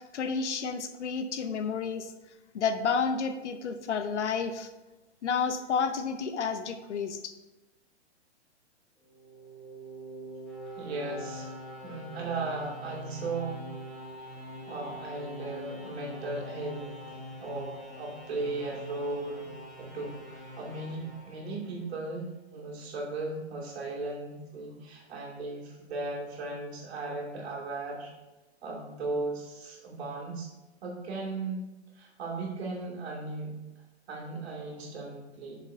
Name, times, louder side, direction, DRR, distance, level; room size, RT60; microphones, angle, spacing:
voice 1, 0.1-2.1 2.5-4.7 5.2-7.3, left 5 dB, 80° left, 9 dB, 0.9 m, -30 dB
sound 1, 9.0-22.0, equal, ahead, 1.5 m, -44 dB
voice 2, 10.7-11.5 11.8-13.7 14.7-19.5 19.8-28.1 28.6-30.5 30.8-31.6 31.9-33.6 34.1-35.6, right 3 dB, 65° right, -2 dB, 2.6 m, -37 dB
8.4 x 6.7 x 2.8 m, 1.1 s
hypercardioid pair, 155°, 34 cm